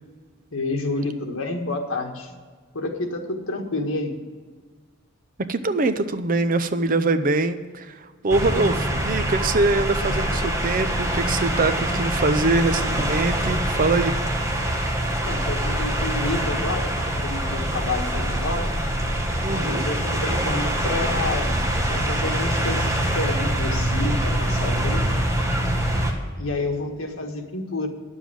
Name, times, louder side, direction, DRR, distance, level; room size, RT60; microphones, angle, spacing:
voice 1, 0.5-2.3 2.7-4.1 15.1-18.7 19.5-21.6 21.9-25.1 26.4-27.9, left 2 dB, 85° left, 3 dB, 1.6 m, -29 dB
voice 2, 5.5-14.1 19.4-19.8, right 3 dB, 40° right, 10 dB, 0.6 m, -23 dB
sound 1, 8.3-26.1, right 1 dB, 15° right, 1.4 m, -24 dB
10.0 x 7.2 x 7.5 m, 1.5 s
head